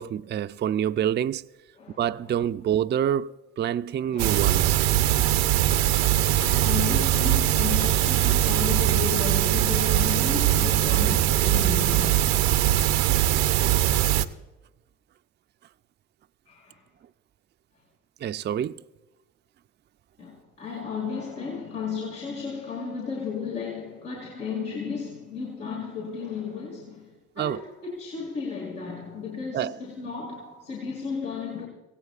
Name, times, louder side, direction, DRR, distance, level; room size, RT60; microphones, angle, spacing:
voice 1, 0.0-1.4 2.0-4.8 18.2-18.8 27.4-27.7 29.5-29.8, right 10 dB, 30° right, 0.4 m, -27 dB
voice 2, 4.1-4.7 5.7-12.7 13.0-13.2 16.5-16.8 20.2-27.1 27.4-31.7, left 5 dB, 90° left, 2.7 m, -34 dB
sound 1, 4.2-14.2, right 13 dB, 75° right, 0.7 m, -21 dB
24.5 x 17.0 x 2.4 m
hypercardioid pair, 55°, 38 cm